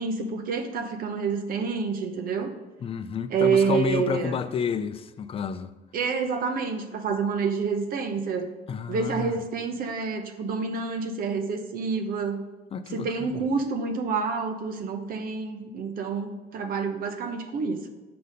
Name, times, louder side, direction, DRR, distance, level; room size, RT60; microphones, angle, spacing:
voice 1, 0.0-2.5 3.3-4.4 5.9-8.5 8.9-12.4 12.9-17.9, right 5 dB, 60° right, 0.9 m, -28 dB
voice 2, 2.8-5.7 8.7-9.4 12.7-13.4, left 7 dB, 35° left, 0.5 m, -30 dB
6.7 x 4.1 x 6.4 m
cardioid pair, 110°, 17 cm